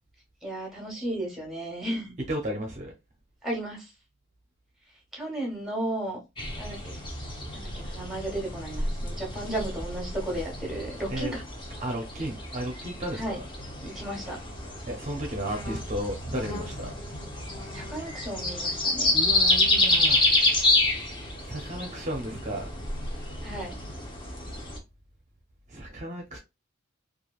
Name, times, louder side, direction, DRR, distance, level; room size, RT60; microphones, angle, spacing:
voice 1, 0.4-2.2 3.4-3.9 5.1-6.2 6.6-7.0 7.5-11.4 13.2-13.4 13.8-14.4 17.7-19.1 23.4-23.8, right 1 dB, ahead, 1.1 m, -34 dB
voice 2, 2.3-2.9 11.1-11.3 11.8-13.4 14.9-17.0 19.1-20.4 21.4-22.7 25.7-26.4, right 1 dB, 35° right, 0.6 m, -34 dB
sound 1, 6.4-24.8, left 2 dB, 25° left, 0.7 m, -29 dB
3.2 x 2.4 x 2.3 m
head